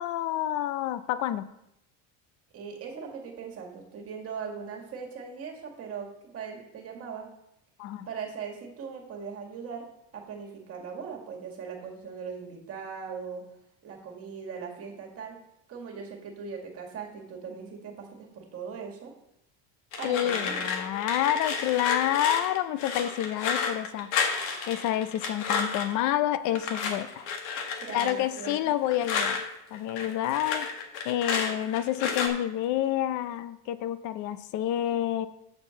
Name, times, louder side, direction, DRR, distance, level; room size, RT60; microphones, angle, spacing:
voice 1, 0.0-1.4 7.8-8.1 20.0-24.1 24.7-27.2 27.9-29.4 29.7-30.7 31.0-35.3, left 12 dB, 50° left, 14 dB, 0.5 m, -28 dB
voice 2, 2.5-6.1 6.3-7.3 8.1-9.9 10.1-13.4 13.8-15.3 15.7-19.1 20.0-20.7 27.8-28.7, right 6 dB, 40° right, 1 dB, 2.0 m, -39 dB
sound 1, 19.9-26.0 26.5-29.4 29.7-32.3, left 5 dB, 90° left, 1.5 m, -31 dB
7.7 x 4.5 x 7.0 m, 0.83 s
cardioid pair, 155°, 37 cm